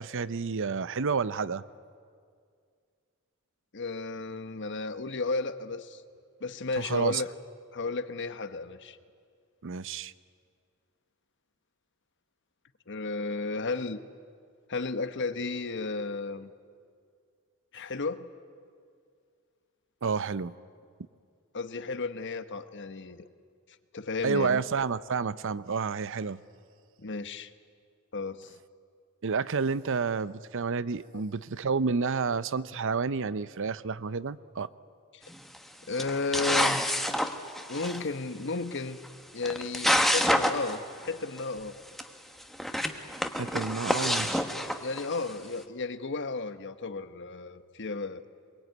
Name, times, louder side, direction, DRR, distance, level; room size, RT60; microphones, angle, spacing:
voice 1, 0.0-1.6 6.8-7.2 9.6-10.1 20.0-20.5 24.2-26.4 29.2-34.7 43.4-44.5, right 5 dB, 60° right, 16 dB, 0.7 m, -30 dB
voice 2, 3.7-6.0 6.4-7.3 7.7-9.0 12.9-14.0 14.7-16.5 17.7-18.3 21.5-23.2 23.9-24.6 27.0-27.5 28.1-28.5 35.1-35.2 35.9-36.8 37.7-39.0 39.3-41.7 44.8-48.2, left 3 dB, 55° left, 11 dB, 1.1 m, -33 dB
sound 1, 35.3-35.6 36.0-38.0 39.0-39.1 39.4-40.8 41.0-41.1 41.4-41.5 42.0-42.1 42.5-45.3, equal, ahead, 1.3 m, -27 dB
23.5 x 22.5 x 9.4 m, 2.2 s
head